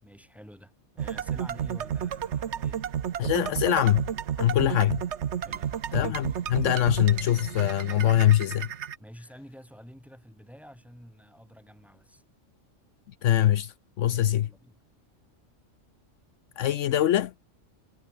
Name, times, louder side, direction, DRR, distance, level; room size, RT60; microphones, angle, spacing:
voice 1, 0.0-2.8 4.7-5.0 5.4-5.8 9.0-12.2 14.1-14.8, equal, ahead, 3.9 m, -49 dB
sound 1, 1.0-9.0, right 9 dB, 65° right, 1.2 m, -32 dB
voice 2, 3.2-4.1 4.4-5.0 5.9-8.7 13.2-14.5 16.6-17.3, left 12 dB, 75° left, 1.0 m, -23 dB
omnidirectional pair, 1.3 m